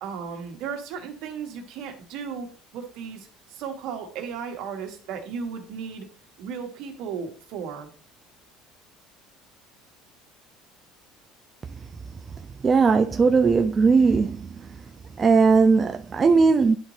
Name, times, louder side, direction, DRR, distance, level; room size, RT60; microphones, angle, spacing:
voice 1, 0.0-2.5 2.7-6.1 6.4-7.9, right 6 dB, 65° right, 1.7 m, -35 dB
voice 2, 12.6-14.4 15.2-16.8, right 4 dB, 25° right, 0.4 m, -18 dB
10.0 x 4.1 x 3.3 m
cardioid pair, 130°, 0 cm